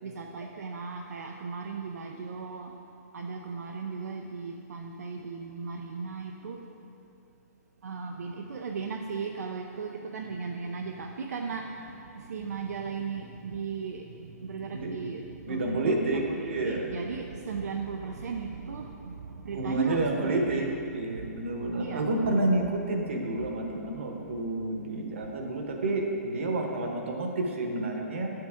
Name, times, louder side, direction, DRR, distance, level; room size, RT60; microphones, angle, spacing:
voice 1, 0.0-2.7 3.1-6.7 7.8-22.1 23.4-25.2 25.6-25.7, right 5 dB, 75° right, 2 dB, 0.6 m, -37 dB
voice 2, 15.4-16.9 19.5-20.7 20.9-28.3, right 2 dB, 50° right, 2 dB, 1.1 m, -29 dB
10.0 x 7.8 x 3.6 m, 2.8 s
hypercardioid pair, 180°, 9 cm